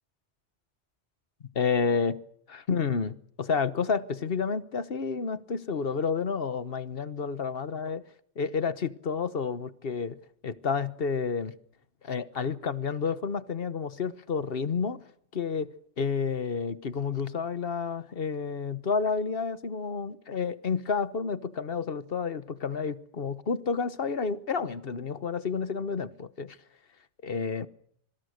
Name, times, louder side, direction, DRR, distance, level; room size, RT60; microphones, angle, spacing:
voice 1, 1.5-2.2 2.5-8.0 8.4-10.2 10.4-11.5 12.0-15.0 15.3-15.7 16.0-26.6 27.2-27.7, left 5 dB, 55° left, 1.3 m, -30 dB
26.5 x 21.5 x 6.5 m
omnidirectional pair, 1.2 m